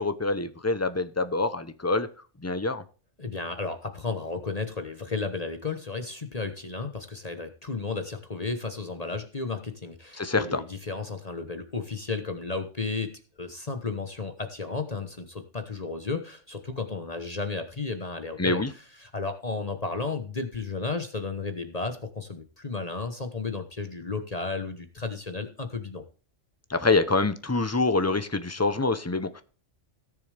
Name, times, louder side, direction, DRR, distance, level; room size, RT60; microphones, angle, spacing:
voice 1, 0.0-2.1 2.4-2.8 10.2-10.6 18.4-18.7 26.7-29.4, left 3 dB, 15° left, 11 dB, 0.6 m, -26 dB
voice 2, 3.2-13.1 13.4-26.0, left 4 dB, 35° left, 7 dB, 1.1 m, -33 dB
17.0 x 6.9 x 3.4 m, 0.38 s
omnidirectional pair, 1.3 m